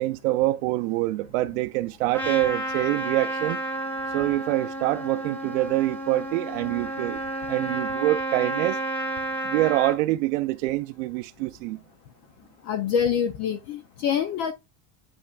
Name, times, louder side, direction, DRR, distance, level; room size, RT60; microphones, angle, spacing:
voice 1, 0.0-3.6 4.1-7.2 7.5-8.8 9.4-11.8, right 17 dB, 70° right, 0.5 m, -25 dB
Trumpet, 2.1-10.0, right 1 dB, 5° left, 0.8 m, -31 dB
voice 2, 12.7-14.5, left 8 dB, 40° left, 0.6 m, -25 dB
8.5 x 5.4 x 2.3 m
cardioid pair, 175°, 40 cm